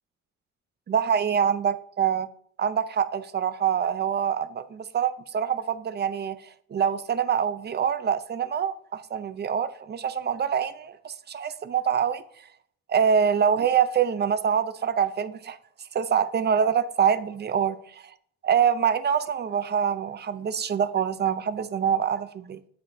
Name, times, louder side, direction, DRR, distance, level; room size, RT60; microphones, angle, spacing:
voice 1, 0.9-2.3 2.6-12.2 12.9-15.6 15.9-18.0 18.4-22.7, right 7 dB, 35° right, 0.6 m, -25 dB
8.7 x 7.9 x 2.7 m
cardioid pair, 90°, 30 cm